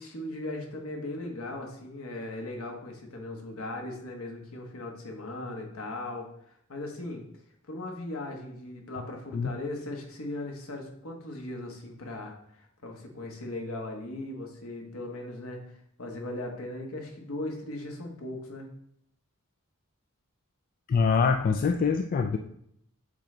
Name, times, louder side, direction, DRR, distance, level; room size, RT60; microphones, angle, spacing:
voice 1, 0.0-7.2 7.7-18.7, left 2 dB, 70° left, 2 dB, 1.2 m, -38 dB
voice 2, 20.9-22.4, left 5 dB, 40° left, 6 dB, 0.3 m, -24 dB
7.7 x 3.3 x 3.8 m, 0.72 s
head